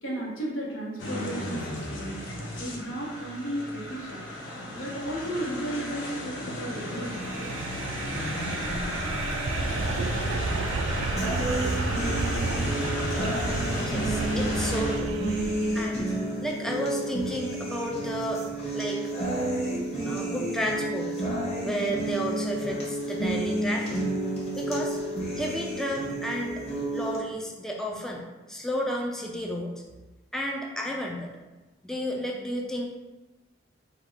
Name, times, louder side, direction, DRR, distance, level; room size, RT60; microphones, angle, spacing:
voice 1, 0.0-2.2 2.6-4.2 4.7-7.5, right 1 dB, 80° left, -4 dB, 1.3 m, -34 dB
sound 1, 1.0-15.0, left 1 dB, 65° left, 0.8 m, -34 dB
sound 2, 6.9-16.1, right 3 dB, 70° right, 0.3 m, -32 dB
sound 3, 11.2-27.2, right 1 dB, 35° left, 1.2 m, -31 dB
voice 2, 13.8-15.2 15.7-16.1 16.4-19.0 20.1-21.1 21.6-24.0 24.6-25.0 25.4-26.6 26.9-29.8 30.3-31.3 31.8-32.9, equal, ahead, -1 dB, 0.4 m, -32 dB
3.9 x 2.3 x 4.6 m, 1.1 s
head